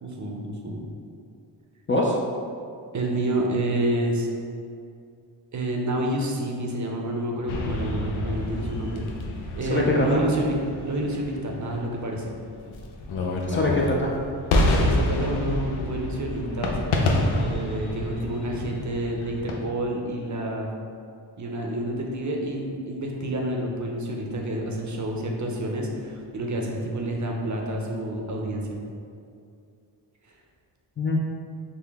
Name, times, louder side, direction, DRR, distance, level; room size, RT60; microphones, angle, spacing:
voice 1, 0.0-0.8 2.9-4.3 5.5-9.0 9.5-10.6 10.9-12.3 14.8-16.8 17.4-20.7 21.4-28.8, right 1 dB, 40° right, 0 dB, 0.6 m, -28 dB
sound 1, 7.5-19.6, left 1 dB, 85° left, 0.5 m, -28 dB
voice 2, 9.7-10.2 13.5-14.1 31.0-31.2, left 1 dB, 30° left, -3 dB, 0.3 m, -23 dB
3.8 x 2.1 x 3.4 m, 2.4 s
cardioid pair, 60°, 47 cm